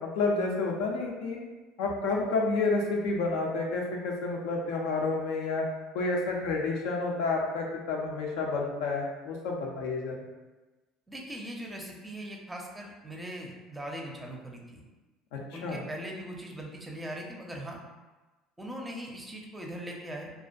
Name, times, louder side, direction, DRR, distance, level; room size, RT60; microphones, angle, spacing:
voice 1, 0.0-1.4 1.8-5.7 5.9-10.1 15.3-15.8, left 3 dB, 70° left, -1 dB, 0.4 m, -30 dB
voice 2, 11.1-14.8 15.5-17.8 18.6-20.3, equal, 15° right, 0 dB, 0.5 m, -40 dB
2.4 x 2.1 x 2.5 m, 1.2 s
hypercardioid pair, 65°, 0 cm